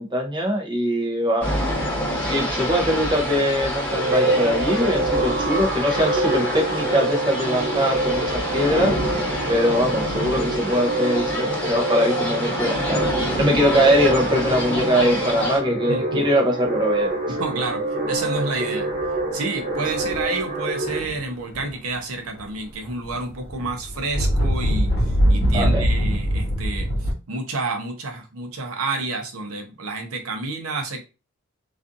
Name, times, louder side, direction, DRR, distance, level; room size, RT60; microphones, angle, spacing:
voice 1, 0.0-1.5 2.2-9.0 9.5-13.0 13.4-17.1 25.4-25.9, equal, 20° right, 1 dB, 0.6 m, -22 dB
sound 1, 1.4-15.6, equal, 5° left, 1.0 m, -27 dB
sound 2, 3.8-21.0, right 2 dB, 35° right, 1.3 m, -26 dB
voice 2, 15.9-16.2 17.4-18.9 19.3-31.0, right 3 dB, 80° right, 4 dB, 0.7 m, -29 dB
sound 3, 18.9-19.2 19.8-20.3 20.8-22.0 22.3-27.1, equal, 45° left, 1.1 m, -23 dB
2.5 x 2.4 x 2.5 m, 0.30 s
head